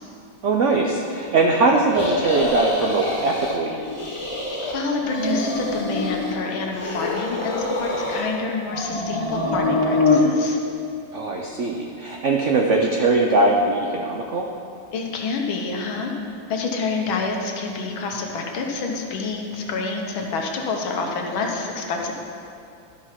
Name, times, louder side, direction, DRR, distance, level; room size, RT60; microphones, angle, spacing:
voice 1, 0.4-3.9 11.1-14.5, right 3 dB, 80° right, 1 dB, 0.6 m, -21 dB
sound 1, 1.9-3.6 3.9-4.7 5.0-6.4 6.7-8.3 8.7-10.2, left 2 dB, 25° left, 0.7 m, -24 dB
voice 2, 4.7-10.6 14.9-16.1 16.5-22.1, left 4 dB, 85° left, 1 dB, 1.9 m, -27 dB
11.5 x 5.1 x 5.7 m, 2.5 s
omnidirectional pair, 2.1 m